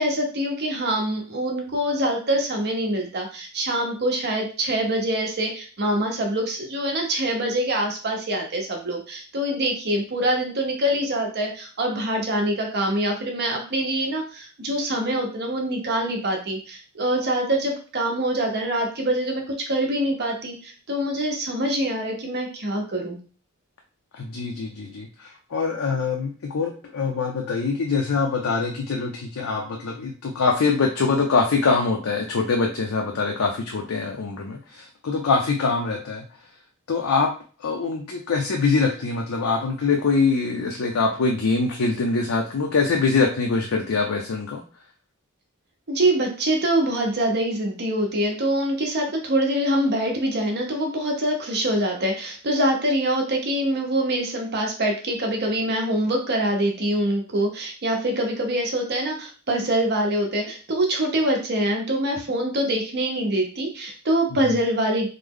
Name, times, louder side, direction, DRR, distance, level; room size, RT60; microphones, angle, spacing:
voice 1, 0.0-23.2 45.9-65.1, right 1 dB, 50° right, 1 dB, 0.8 m, -24 dB
voice 2, 24.1-36.2 36.9-37.3 37.6-44.6, left 4 dB, 75° left, 1 dB, 0.5 m, -24 dB
3.2 x 2.0 x 3.6 m, 0.38 s
head